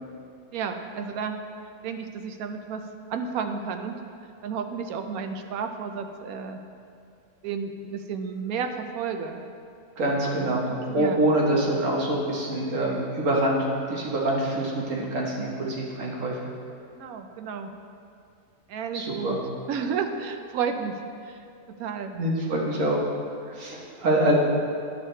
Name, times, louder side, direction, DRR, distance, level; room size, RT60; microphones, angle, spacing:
voice 1, 0.5-1.4 1.8-4.0 4.4-6.6 7.4-9.4 10.0-10.1 10.4-10.6 10.9-11.2 16.9-17.7 18.7-19.4 19.7-21.0 21.3-21.4 21.7-22.1, right 6 dB, 75° right, 6 dB, 1.1 m, -32 dB
voice 2, 10.0-13.6 13.9-16.5 18.9-19.4 22.1-23.1 23.4-24.4, right 1 dB, 60° right, -3 dB, 1.6 m, -25 dB
11.0 x 6.4 x 3.2 m, 2.4 s
omnidirectional pair, 1.6 m